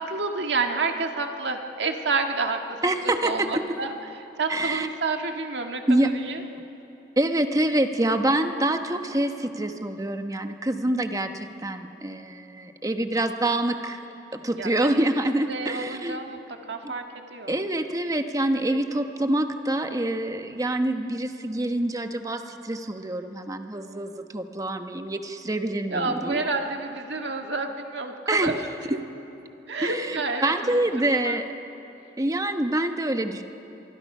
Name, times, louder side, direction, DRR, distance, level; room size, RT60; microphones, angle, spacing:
voice 1, 0.0-2.6 3.0-3.9 4.4-6.4 14.6-14.7 15.5-16.4 16.7-17.6 25.9-28.1 28.4-28.6 29.7-31.4, right 3 dB, 75° right, 4 dB, 1.8 m, -29 dB
voice 2, 2.8-3.6 4.5-4.9 5.9-6.1 7.2-14.0 14.3-16.2 16.8-16.9 17.5-26.5 28.3-28.5 28.8-29.0 29.8-31.5 32.2-33.4, right 1 dB, 20° right, 7 dB, 1.1 m, -26 dB
24.5 x 24.0 x 5.5 m, 3.0 s
head